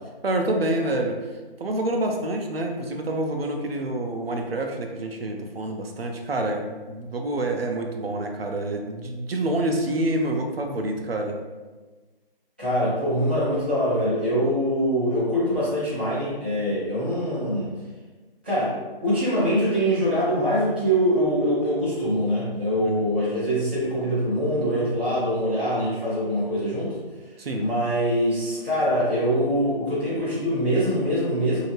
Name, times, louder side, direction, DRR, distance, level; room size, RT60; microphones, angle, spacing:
voice 1, 0.2-1.2 1.6-11.4 22.8-23.0 27.4-27.7, right 1 dB, 75° right, 3 dB, 0.6 m, -27 dB
voice 2, 12.6-17.7 18.4-27.0 27.6-31.6, equal, 10° right, -13 dB, 0.5 m, -24 dB
3.0 x 2.7 x 3.0 m, 1.3 s
figure-of-eight pair, 155°, 30 cm